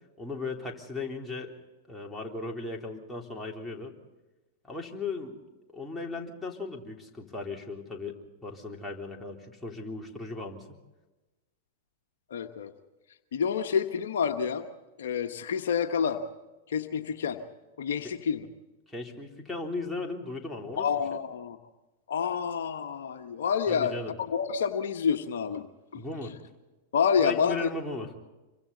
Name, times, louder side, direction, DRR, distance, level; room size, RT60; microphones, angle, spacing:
voice 1, 0.2-1.5 1.9-3.9 4.6-5.4 5.7-10.7 18.0-18.1 18.9-20.9 21.1-21.2 23.7-24.2 25.9-26.3 27.2-28.1, left 3 dB, 5° left, -1 dB, 3.6 m, -37 dB
voice 2, 12.3-12.7 13.3-14.7 15.0-16.2 16.7-17.4 17.8-18.5 20.8-21.6 22.1-25.7 25.9-26.0 26.9-27.7, left 7 dB, 70° left, 6 dB, 1.3 m, -28 dB
27.0 x 24.0 x 4.1 m, 1.1 s
hypercardioid pair, 100°, 0 cm